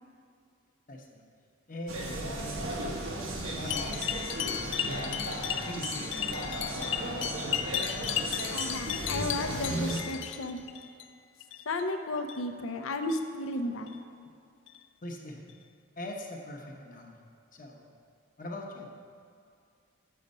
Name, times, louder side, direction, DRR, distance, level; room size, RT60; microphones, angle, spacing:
voice 1, 0.9-1.2 1.7-2.7 3.3-4.4 4.8-5.3 5.7-7.1 15.0-15.4 16.0-17.2 17.5-17.9 18.4-18.9, left 1 dB, 40° left, 1 dB, 0.9 m, -42 dB
sound 1, 1.9-10.0, right 1 dB, 85° right, 1.2 m, -35 dB
sound 2, 3.7-11.0 11.4-11.8 12.2-12.4 13.0-13.2 13.9-14.0 14.7-14.8 15.5-15.6, left 10 dB, 60° left, 0.3 m, -35 dB
voice 2, 8.5-10.6 11.7-13.9, left 2 dB, 90° left, 7 dB, 0.6 m, -33 dB
7.3 x 6.6 x 5.3 m, 2.3 s
head